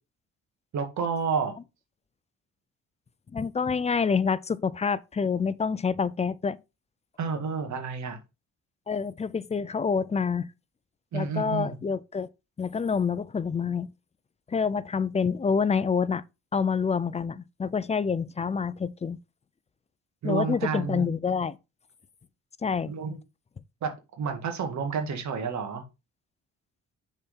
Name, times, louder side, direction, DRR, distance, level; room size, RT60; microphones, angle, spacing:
voice 1, 0.7-1.6 7.2-8.2 11.1-11.8 20.2-21.1 22.8-23.2 23.8-25.8, right 5 dB, 70° right, 1.9 m, -30 dB
voice 2, 3.3-6.6 8.9-10.5 11.1-12.3 12.6-13.9 14.5-16.2 16.5-19.2 20.2-21.6 22.6-22.9, left 5 dB, 20° left, 0.4 m, -27 dB
6.6 x 4.3 x 3.7 m
cardioid pair, 90°, 30 cm